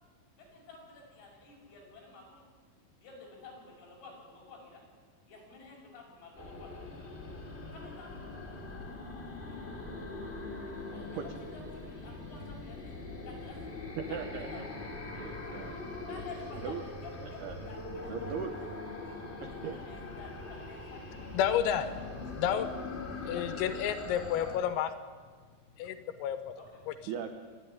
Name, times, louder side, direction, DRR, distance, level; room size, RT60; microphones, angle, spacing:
voice 1, 0.4-2.4 3.0-4.8 5.3-7.1 7.7-8.3 9.5-9.6 10.9-13.7 14.1-14.8 15.4-15.6 16.0-18.7 19.0-21.3 21.8-22.0 23.3-23.5 26.6-26.8, left 4 dB, 50° left, -2 dB, 7.3 m, -51 dB
sound 1, 6.3-24.6, left 3 dB, 20° left, 1.6 m, -42 dB
voice 2, 14.0-14.7 15.2-16.2 16.6-16.8 17.2-17.6 18.1-18.6 19.4-19.8 27.1-27.3, right 7 dB, 85° right, 7 dB, 2.2 m, -39 dB
voice 3, 21.3-21.9 22.4-22.7 23.3-24.9 25.8-26.4, left 9 dB, 85° left, 10 dB, 3.7 m, -30 dB
25.5 x 10.5 x 9.9 m, 1.5 s
omnidirectional pair, 6.0 m